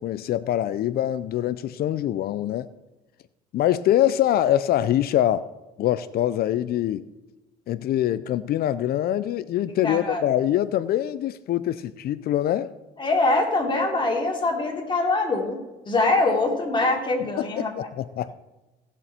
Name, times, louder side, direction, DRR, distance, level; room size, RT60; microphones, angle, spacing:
voice 1, 0.0-2.7 3.5-5.5 5.8-7.0 7.7-12.7 17.2-18.3, left 12 dB, 60° left, 0.6 m, -24 dB
voice 2, 9.8-10.2 13.0-15.6 15.9-17.7, left 2 dB, 25° left, 3.4 m, -23 dB
18.0 x 7.0 x 4.4 m
supercardioid pair, 90°, 18 cm